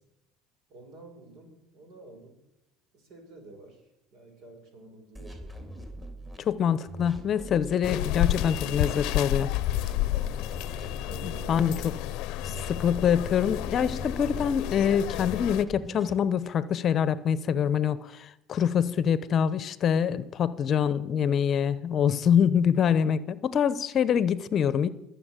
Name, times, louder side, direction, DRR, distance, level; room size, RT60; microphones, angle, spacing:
voice 1, 0.7-2.4 2.9-5.6 10.1-10.5 11.0-11.8 22.3-22.8, right 2 dB, 60° right, 5.6 m, -50 dB
sound 1, 5.1-6.4 6.9-9.1 9.6-11.9 12.4-14.6 15.1-16.2, right 1 dB, 15° right, 3.6 m, -42 dB
voice 2, 6.4-9.5 11.2-11.8 12.7-24.9, left 8 dB, 40° left, 0.8 m, -25 dB
sound 2, 7.8-15.6, left 14 dB, 70° left, 0.7 m, -31 dB
21.0 x 7.3 x 9.0 m
supercardioid pair, 115°, 0 cm